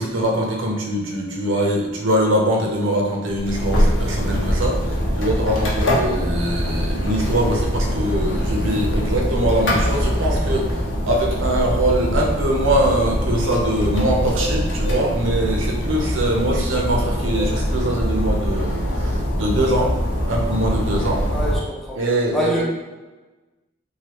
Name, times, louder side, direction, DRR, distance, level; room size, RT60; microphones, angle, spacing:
voice 1, 0.0-21.2 22.0-22.6, right 1 dB, 85° right, -1 dB, 0.6 m, -22 dB
sound 1, 3.3-21.6, equal, 70° left, 0.7 m, -23 dB
voice 2, 21.3-22.0 22.3-22.6, equal, ahead, -4 dB, 0.5 m, -24 dB
3.2 x 2.3 x 2.9 m, 1.2 s
head